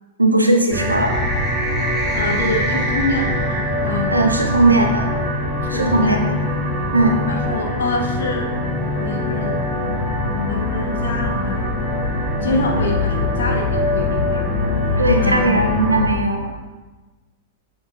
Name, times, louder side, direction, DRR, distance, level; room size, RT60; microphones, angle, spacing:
voice 1, 0.2-1.1 4.1-5.0 5.7-6.4 6.9-7.2 15.0-16.6, right 2 dB, 85° right, 3 dB, 0.9 m, -17 dB
sound 1, 0.7-16.1, left 1 dB, ahead, 2.0 m, -22 dB
voice 2, 2.1-4.3 4.6-4.8 5.6-6.3 7.3-8.5 9.0-9.6 10.2-11.8 12.4-14.5 14.8-15.8, left 2 dB, 65° left, 1 dB, 1.2 m, -26 dB
8.1 x 6.2 x 2.4 m, 1.2 s
figure-of-eight pair, 100°, 0 cm